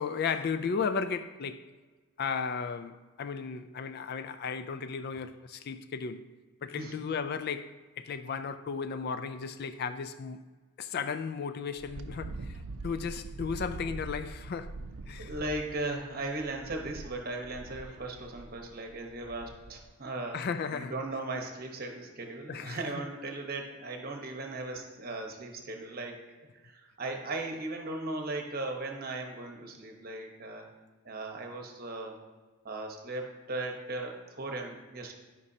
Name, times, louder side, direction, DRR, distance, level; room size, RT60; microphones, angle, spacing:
voice 1, 0.0-1.7 2.2-6.2 6.6-10.4 10.8-14.7 15.1-15.3 20.3-20.9 22.5-22.8, left 5 dB, 45° left, 0.3 m, -35 dB
voice 2, 6.7-7.1 15.2-20.4 20.7-26.2 26.6-30.7 31.0-32.2 32.6-35.1, right 2 dB, 45° right, 1.0 m, -37 dB
Wind, 11.8-19.9, right 3 dB, 80° right, 0.5 m, -44 dB
12.5 x 5.2 x 2.8 m
head